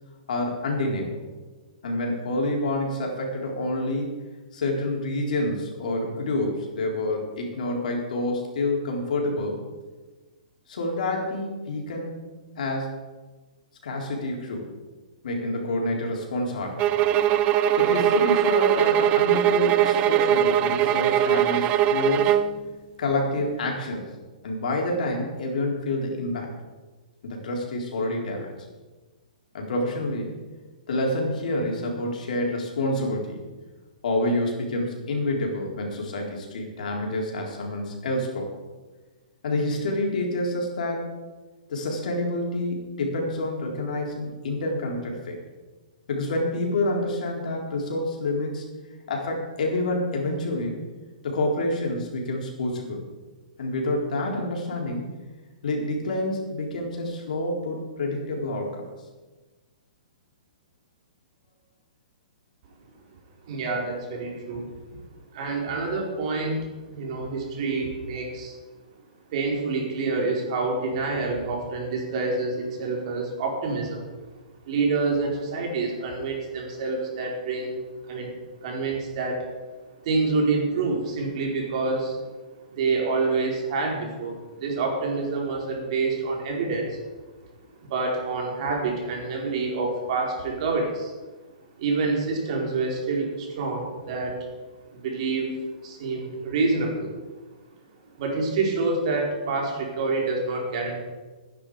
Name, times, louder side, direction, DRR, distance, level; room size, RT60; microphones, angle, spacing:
voice 1, 0.3-1.2 1.8-4.2 4.5-9.6 10.7-12.2 12.6-12.9 13.8-14.7 15.2-16.8 17.8-22.4 23.0-24.1 24.4-26.5 27.2-28.5 29.5-30.3 30.9-33.4 34.0-38.5 39.4-41.1 41.7-45.4 46.1-48.6 49.1-50.8 51.2-53.0 53.6-55.1 55.6-58.8, left 1 dB, 70° left, 0 dB, 4.1 m, -28 dB
sound 1, 16.8-22.5, right 10 dB, 25° right, 0.6 m, -21 dB
voice 2, 63.5-64.7 65.3-68.5 69.3-74.1 74.7-77.8 78.1-78.3 78.6-79.4 80.0-82.2 82.7-87.0 87.8-91.1 91.8-94.4 94.9-95.5 95.8-97.1 98.2-101.0, right 3 dB, 50° right, -1 dB, 4.7 m, -27 dB
15.0 x 10.5 x 5.0 m, 1.3 s
hypercardioid pair, 150°, 4 cm